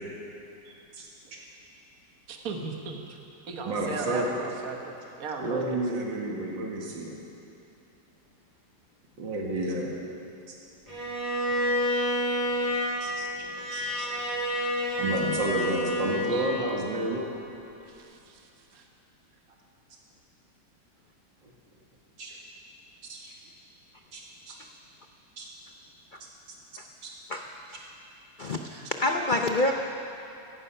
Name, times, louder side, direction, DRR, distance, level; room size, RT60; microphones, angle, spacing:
voice 1, 2.3-3.2 3.5-5.8 17.9-18.4 18.7-18.8, right 4 dB, 50° right, 2 dB, 1.7 m, -36 dB
voice 2, 3.6-4.3 5.4-7.2 9.2-10.0 10.5-10.6 13.0-13.3 13.7-14.1 15.0-17.3 22.2-22.4 23.1-23.3 24.1-24.5 25.4-25.5 27.0-27.1, right 1 dB, 80° right, -1 dB, 2.5 m, -31 dB
Bowed string instrument, 10.9-17.1, equal, 20° left, 4.9 m, -29 dB
voice 3, 27.3-27.8 28.4-29.7, left 2 dB, 70° left, 3 dB, 0.4 m, -27 dB
16.5 x 15.0 x 5.6 m, 2.8 s
omnidirectional pair, 2.0 m